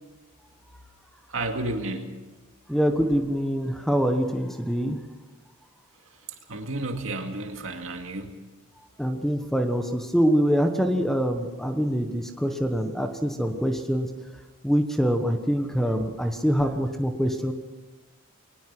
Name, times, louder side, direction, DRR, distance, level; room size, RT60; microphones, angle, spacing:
voice 1, 1.3-2.1 6.5-8.4, right 2 dB, 65° right, 4 dB, 2.3 m, -31 dB
voice 2, 2.7-5.0 9.0-14.1 14.6-17.5, equal, ahead, 6 dB, 1.2 m, -24 dB
22.0 x 19.5 x 6.1 m, 1.2 s
head